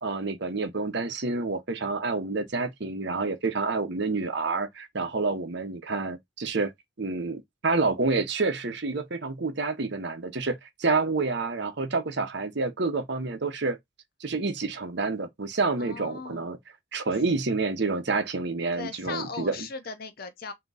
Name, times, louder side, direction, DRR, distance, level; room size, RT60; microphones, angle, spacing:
voice 1, 0.0-6.7 7.0-13.8 14.2-16.6 16.9-19.7, right 3 dB, 55° right, 0.8 m, -28 dB
voice 2, 15.8-16.5 18.7-20.5, left 4 dB, 45° left, 0.7 m, -38 dB
3.6 x 2.9 x 4.0 m
head